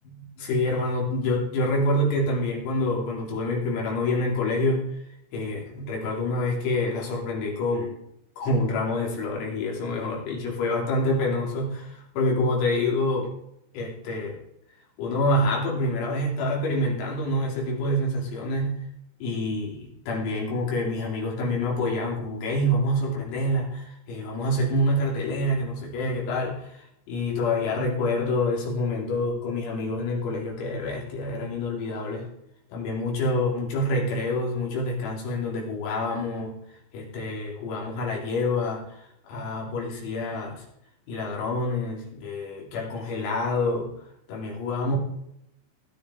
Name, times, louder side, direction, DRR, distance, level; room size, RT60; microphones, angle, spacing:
voice 1, 0.1-4.9 5.3-8.0 8.4-13.3 13.7-14.4 15.0-18.8 19.2-26.8 27.1-32.3 32.7-36.6 36.9-39.0 39.3-40.6 41.1-43.9 44.3-45.0, left 1 dB, 80° left, -3 dB, 6.0 m, -27 dB
20.0 x 11.5 x 3.9 m, 0.79 s
omnidirectional pair, 6.0 m